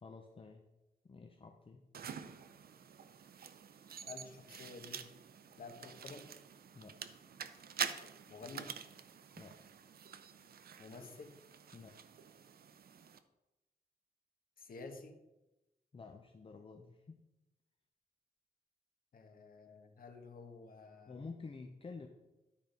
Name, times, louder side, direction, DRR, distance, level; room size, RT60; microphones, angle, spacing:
voice 1, 0.0-0.7 1.0-1.8 6.7-7.0 9.4-9.6 11.7-12.0 15.9-17.2 21.1-22.1, left 4 dB, 35° left, 4 dB, 0.7 m, -50 dB
sound 1, 1.9-13.2, right 7 dB, 70° right, 0.6 m, -47 dB
voice 2, 4.1-5.1 5.6-6.3 8.3-8.7 10.8-11.4 14.6-15.2 19.1-21.2, left 4 dB, 65° left, 5 dB, 1.3 m, -51 dB
11.5 x 4.6 x 5.2 m, 1.0 s
wide cardioid pair, 125°, 16 cm